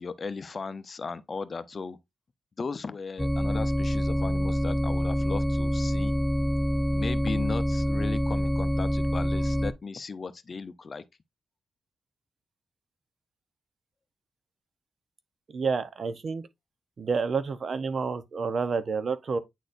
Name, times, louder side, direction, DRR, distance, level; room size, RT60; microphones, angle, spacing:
voice 1, 0.0-2.0 2.6-6.2 6.9-11.0, left 4 dB, 45° left, 0.7 m, -36 dB
sound 1, 3.2-9.7, equal, ahead, 0.5 m, -26 dB
voice 2, 15.5-16.4 17.0-19.4, right 5 dB, 55° right, 0.8 m, -29 dB
9.0 x 4.1 x 2.6 m
cardioid pair, 85°, 0 cm